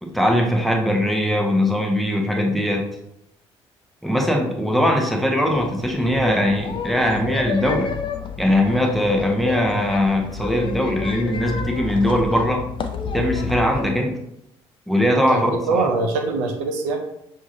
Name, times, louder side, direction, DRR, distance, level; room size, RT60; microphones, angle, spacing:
voice 1, 0.0-2.8 4.0-7.9 8.4-12.6 13.1-14.2 14.9-15.5, equal, ahead, 1 dB, 0.9 m, -20 dB
sound 1, 5.5-13.9, left 5 dB, 35° left, 0.5 m, -30 dB
voice 2, 15.3-17.0, right 3 dB, 65° right, 4 dB, 0.6 m, -23 dB
6.0 x 2.7 x 2.6 m, 0.79 s
figure-of-eight pair, 50°, 14 cm